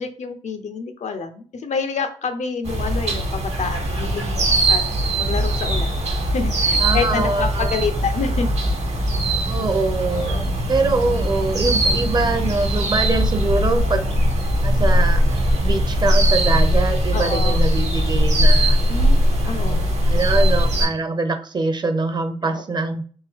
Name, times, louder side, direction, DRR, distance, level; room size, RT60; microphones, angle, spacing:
voice 1, 0.0-6.0 6.3-8.5 10.1-10.4 17.1-17.6 18.9-19.9 20.1-20.5 22.4-22.6, left 5 dB, 85° left, 7 dB, 0.6 m, -28 dB
sound 1, 2.7-20.9, equal, 70° right, 1.0 m, -20 dB
voice 2, 6.8-7.8 9.4-10.4 10.7-14.1 14.4-18.8 19.4-23.0, right 3 dB, 40° right, 7 dB, 0.5 m, -24 dB
3.6 x 3.0 x 3.4 m, 0.43 s
wide cardioid pair, 160°, 12 cm